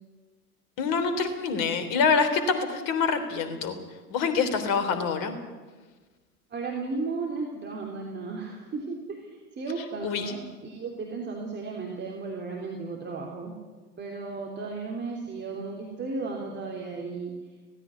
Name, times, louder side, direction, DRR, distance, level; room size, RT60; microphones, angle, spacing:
voice 1, 0.8-3.8 4.1-5.3 10.0-10.3, left 5 dB, 45° left, 9 dB, 3.5 m, -26 dB
voice 2, 6.5-13.6 14.0-17.3, right 4 dB, 25° right, 0 dB, 3.3 m, -35 dB
17.5 x 16.0 x 9.6 m, 1.3 s
figure-of-eight pair, 90°, 46 cm